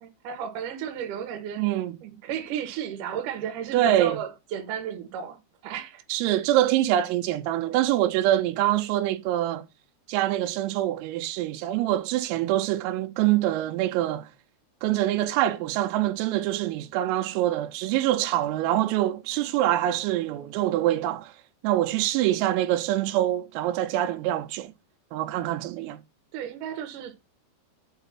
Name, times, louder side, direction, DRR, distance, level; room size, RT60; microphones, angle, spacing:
voice 1, 0.0-1.6 2.0-6.0 26.3-27.1, right 8 dB, 65° right, 2.1 m, -34 dB
voice 2, 1.6-2.0 3.7-4.2 6.1-9.6 10.1-14.3 14.8-21.3 21.6-24.7 25.1-26.0, right 13 dB, 85° right, 3.4 m, -25 dB
8.0 x 4.7 x 5.8 m
omnidirectional pair, 5.9 m